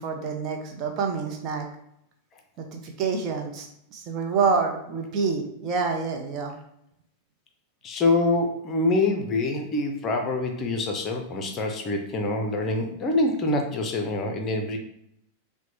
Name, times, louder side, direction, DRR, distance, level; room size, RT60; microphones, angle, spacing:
voice 1, 0.0-1.7 2.6-3.7 3.9-6.5, right 5 dB, 35° right, 2 dB, 0.7 m, -27 dB
voice 2, 7.8-14.8, left 2 dB, 30° left, 4 dB, 0.7 m, -25 dB
5.9 x 2.2 x 3.1 m, 0.74 s
figure-of-eight pair, 90°, 0 cm